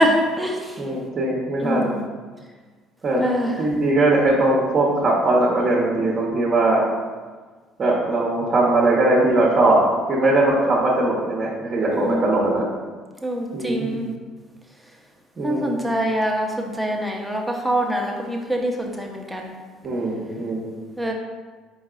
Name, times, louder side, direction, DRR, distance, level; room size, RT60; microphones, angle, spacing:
voice 1, 0.0-0.8 1.6-2.0 3.2-3.5 11.9-12.5 13.2-14.1 15.4-19.6 21.0-21.1, equal, 5° right, 0 dB, 0.8 m, -24 dB
voice 2, 0.8-1.9 3.0-3.2 3.6-6.9 7.8-12.7 13.5-13.9 15.4-15.7 19.8-20.6, right 2 dB, 40° right, -4 dB, 0.9 m, -20 dB
4.5 x 4.1 x 2.4 m, 1.4 s
hypercardioid pair, 60°, 0 cm